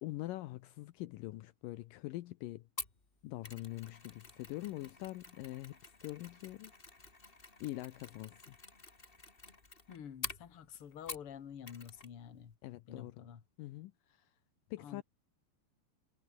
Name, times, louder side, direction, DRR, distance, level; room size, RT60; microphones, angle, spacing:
voice 1, 0.0-2.6 3.2-6.7 7.6-8.6 12.6-13.2 13.6-13.9 14.7-15.0, left 17 dB, 85° left, 2.0 m, -44 dB
Mechanisms, 2.8-11.4 11.7-12.1 12.4-12.5, left 3 dB, 20° left, 1.7 m, -49 dB
voice 2, 9.9-12.5 12.9-13.4 14.8-15.0, left 8 dB, 45° left, 2.2 m, -49 dB
omnidirectional pair, 4.8 m